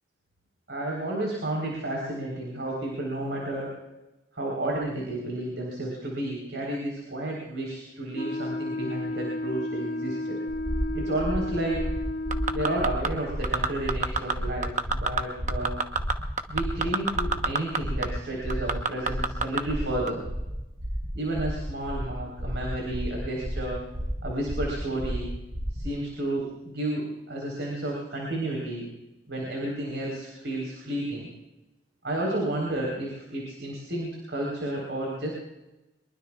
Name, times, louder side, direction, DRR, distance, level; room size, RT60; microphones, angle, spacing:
voice 1, 0.7-3.8 4.3-10.4 10.9-11.9 12.5-15.8 16.5-20.2 21.1-23.9 24.2-25.3 25.7-28.9 29.3-31.3 32.0-35.3, right 1 dB, 85° right, -2 dB, 4.2 m, -31 dB
Wind instrument woodwind instrument, 8.1-13.0, left 1 dB, 55° left, 2.0 m, -32 dB
sound 1, 10.5-25.9, equal, 65° right, 5.0 m, -33 dB
sound 2, 12.3-13.1 13.4-14.3 14.6-15.2 15.5-17.8 18.0-18.1 18.5-19.6 20.1-20.2, right 4 dB, 45° right, 1.0 m, -25 dB
23.5 x 22.5 x 2.4 m, 1.0 s
head